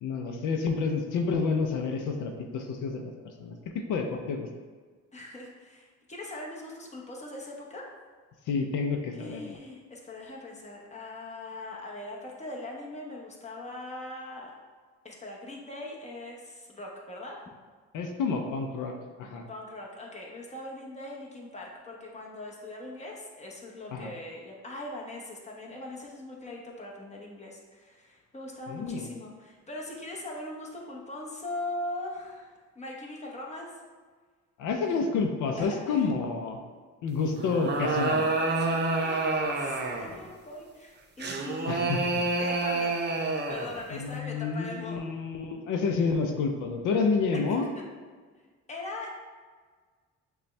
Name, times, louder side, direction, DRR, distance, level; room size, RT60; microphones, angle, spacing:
voice 1, 0.0-3.1 3.4-4.5 8.5-9.6 17.9-18.9 19.2-19.4 23.9-24.1 28.7-29.1 34.6-36.6 37.0-38.3 41.7-42.2 43.9-47.7, left 4 dB, 85° left, 4 dB, 0.6 m, -29 dB
voice 2, 5.1-7.9 9.1-14.5 15.0-17.4 19.5-33.8 35.6-36.1 38.5-41.9 42.4-45.0 47.5-47.8 48.7-49.1, left 2 dB, 20° left, -2 dB, 1.0 m, -41 dB
sound 1, 37.4-40.2 41.2-43.8, right 3 dB, 35° right, 0.7 m, -28 dB
6.6 x 2.3 x 3.2 m, 1.5 s
cardioid pair, 90°, 30 cm